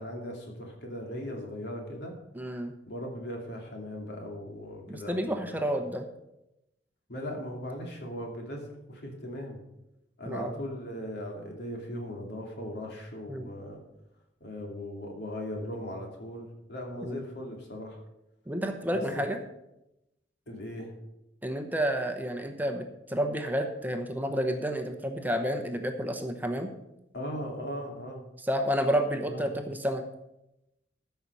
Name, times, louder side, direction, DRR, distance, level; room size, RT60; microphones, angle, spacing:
voice 1, 0.0-2.2 2.9-5.7 7.1-9.6 10.2-13.8 14.4-18.0 18.9-19.2 20.5-20.9 27.1-28.3 29.3-29.5, equal, 65° left, 1 dB, 2.5 m, -38 dB
voice 2, 2.3-2.7 4.9-6.0 10.3-10.5 13.3-13.5 17.0-17.2 18.5-19.4 21.4-26.7 28.4-30.0, equal, 10° right, 5 dB, 0.9 m, -30 dB
13.5 x 5.7 x 5.4 m, 0.87 s
head